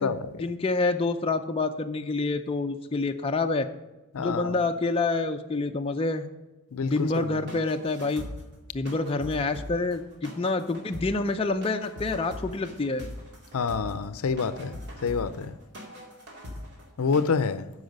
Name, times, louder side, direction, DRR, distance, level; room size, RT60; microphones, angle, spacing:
voice 1, 0.0-3.7 4.2-6.3 6.8-8.2 8.7-13.1, left 3 dB, 25° left, 0.5 m, -27 dB
voice 2, 4.1-4.6 6.7-7.3 13.5-14.8 15.0-15.5 17.0-17.6, left 5 dB, 70° left, 0.5 m, -27 dB
sound 1, 6.9-17.2, left 1 dB, 50° right, 2.3 m, -42 dB
13.0 x 5.6 x 5.3 m
head